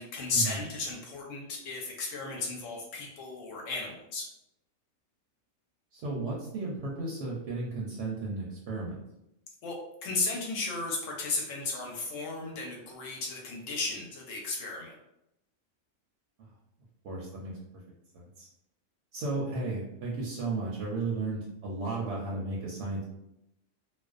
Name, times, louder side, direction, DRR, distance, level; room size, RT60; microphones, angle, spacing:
voice 1, 0.0-4.3 9.6-14.9, left 3 dB, 70° left, -1 dB, 0.9 m, -34 dB
voice 2, 5.9-9.0 16.4-16.5 17.0-17.8 18.1-18.5 19.1-23.0, right 3 dB, 65° right, -3 dB, 0.8 m, -34 dB
2.4 x 2.1 x 2.4 m, 0.83 s
omnidirectional pair, 1.4 m